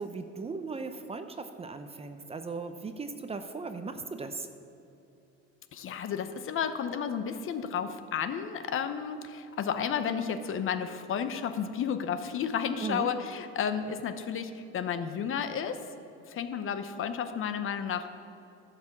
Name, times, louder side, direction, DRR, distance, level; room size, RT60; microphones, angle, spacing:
voice 1, 0.0-4.5 12.8-13.1, right 4 dB, 20° right, 8 dB, 0.7 m, -37 dB
voice 2, 5.7-15.8 16.3-18.2, left 7 dB, 45° left, 10 dB, 0.8 m, -32 dB
11.5 x 6.8 x 7.3 m, 2.9 s
cardioid pair, 110°, 30 cm